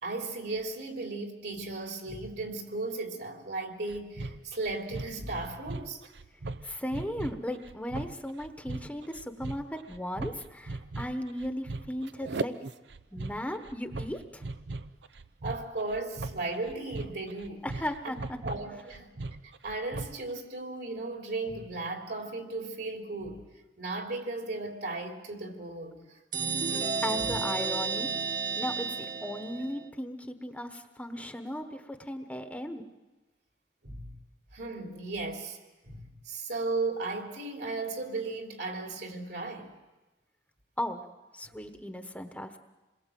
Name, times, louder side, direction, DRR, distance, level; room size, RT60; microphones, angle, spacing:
voice 1, 0.0-6.0 15.4-17.7 18.4-19.1 19.6-23.4 23.8-26.1 33.8-34.1 34.5-35.6 35.8-39.7, right 3 dB, 65° right, 3.4 m, -36 dB
sound 1, 3.9-20.3, right 2 dB, 80° right, 0.8 m, -39 dB
voice 2, 6.6-12.5 13.1-14.4 17.6-18.4 27.0-28.1 28.5-32.8 40.8-41.0 41.3-42.6, left 1 dB, 10° left, 1.2 m, -36 dB
sound 2, 26.3-29.9, right 5 dB, 50° right, 1.8 m, -32 dB
27.5 x 22.0 x 7.7 m
head